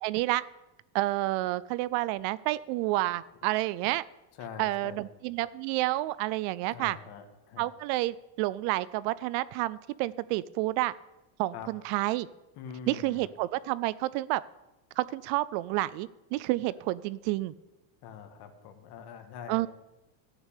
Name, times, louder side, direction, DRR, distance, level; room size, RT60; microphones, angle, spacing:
voice 1, 0.0-0.4 0.9-4.0 4.6-7.0 7.6-10.9 11.4-12.3 12.9-14.4 15.0-17.5 19.5-19.7, right 17 dB, 55° right, 18 dB, 0.5 m, -29 dB
voice 2, 4.4-5.0 6.7-7.7 11.5-11.7 12.5-13.3 18.0-19.7, left 7 dB, 50° left, 6 dB, 2.0 m, -44 dB
14.0 x 6.0 x 8.4 m, 0.99 s
supercardioid pair, 140°, 49 cm